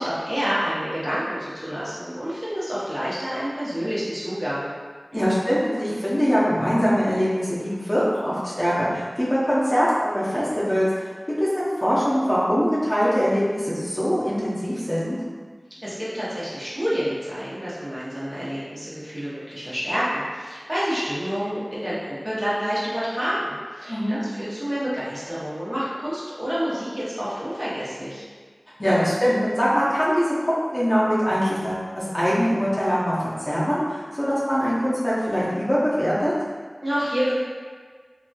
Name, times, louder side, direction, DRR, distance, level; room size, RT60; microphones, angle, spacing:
voice 1, 0.0-4.7 5.1-5.2 15.8-22.0 22.2-28.2 36.8-37.3, equal, 30° right, -10 dB, 1.0 m, -28 dB
voice 2, 5.1-11.1 11.4-15.2 23.9-24.2 28.8-30.3 30.6-36.3, equal, 20° left, -9 dB, 0.7 m, -22 dB
2.8 x 2.6 x 2.3 m, 1.5 s
wide cardioid pair, 50°, 0 cm